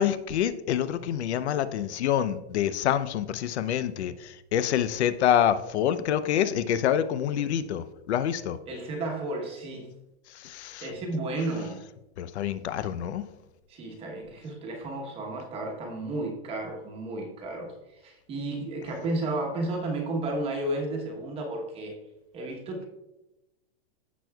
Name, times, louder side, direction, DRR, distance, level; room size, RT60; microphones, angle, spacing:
voice 1, 0.0-8.6 10.3-10.9 12.2-13.2, left 10 dB, 85° left, 13 dB, 0.7 m, -27 dB
voice 2, 8.7-9.9 10.8-11.8 13.7-22.0 22.3-22.9, right 2 dB, 15° right, 0 dB, 1.1 m, -33 dB
15.5 x 6.2 x 2.3 m, 0.99 s
supercardioid pair, 170°, 33 cm